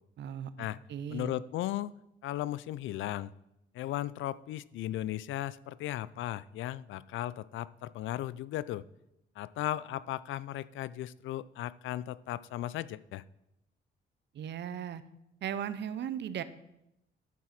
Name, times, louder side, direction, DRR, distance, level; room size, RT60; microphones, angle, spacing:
voice 1, 0.2-0.5 0.9-1.3 14.3-15.0 15.4-16.4, right 9 dB, 65° right, 14 dB, 0.6 m, -36 dB
voice 2, 1.1-1.9 2.2-3.3 3.7-8.9 9.4-13.2, left 13 dB, 75° left, 19 dB, 0.4 m, -36 dB
12.0 x 4.8 x 5.8 m, 0.85 s
cardioid pair, 90°, 20 cm